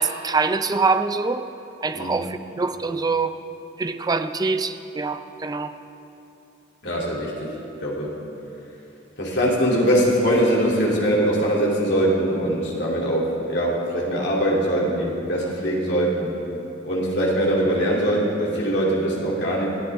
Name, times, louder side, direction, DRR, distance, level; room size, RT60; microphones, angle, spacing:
voice 1, 0.0-1.4 1.8-3.3 3.8-5.7, right 4 dB, 20° right, 9 dB, 0.5 m, -24 dB
voice 2, 6.8-7.5 7.8-8.2 9.2-16.4 16.8-19.7, equal, 65° left, -4 dB, 2.9 m, -22 dB
20.0 x 14.0 x 3.6 m, 2.9 s
head